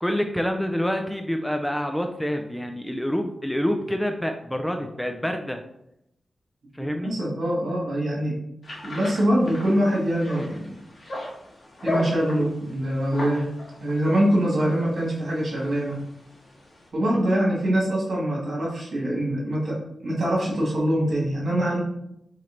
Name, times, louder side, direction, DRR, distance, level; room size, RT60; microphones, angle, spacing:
voice 1, 0.0-5.6 6.7-7.1 17.1-17.2, equal, 5° left, 5 dB, 0.3 m, -27 dB
voice 2, 6.8-8.4 8.8-10.8 11.8-13.5 13.8-16.0 16.9-19.8 20.0-21.8, right 1 dB, 60° right, -4 dB, 1.8 m, -24 dB
sound 1, 8.6-16.9, left 1 dB, 50° left, 1.4 m, -37 dB
4.2 x 3.2 x 3.8 m, 0.81 s
wide cardioid pair, 105°, 0 cm